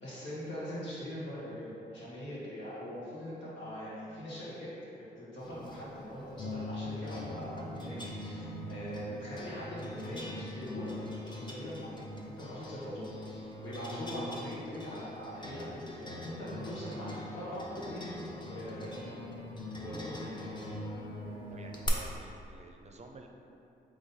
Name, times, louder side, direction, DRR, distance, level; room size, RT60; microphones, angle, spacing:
voice 1, 0.0-4.7 5.0-8.0 8.2-10.9 11.2-18.0 18.5-19.5 19.8-20.6, equal, 80° left, -9 dB, 1.4 m, -42 dB
sound 1, 5.4-21.9, left 1 dB, 25° left, 0.7 m, -42 dB
voice 2, 21.5-23.3, right 3 dB, 35° right, 3 dB, 0.5 m, -50 dB
3.9 x 3.0 x 4.0 m, 2.7 s
supercardioid pair, 50°, 19 cm